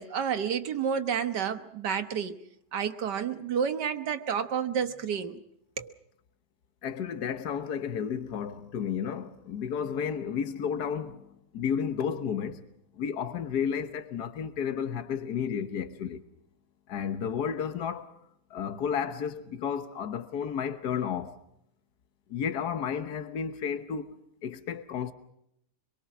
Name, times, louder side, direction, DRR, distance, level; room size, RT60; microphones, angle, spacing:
voice 1, 0.0-2.4 2.7-5.4 5.8-5.9, right 7 dB, 85° right, 1.9 m, -30 dB
voice 2, 6.8-12.6 13.0-16.2 16.9-18.1 18.5-21.4 22.3-25.1, left 7 dB, 70° left, 1.7 m, -32 dB
25.5 x 22.5 x 6.1 m
omnidirectional pair, 1.8 m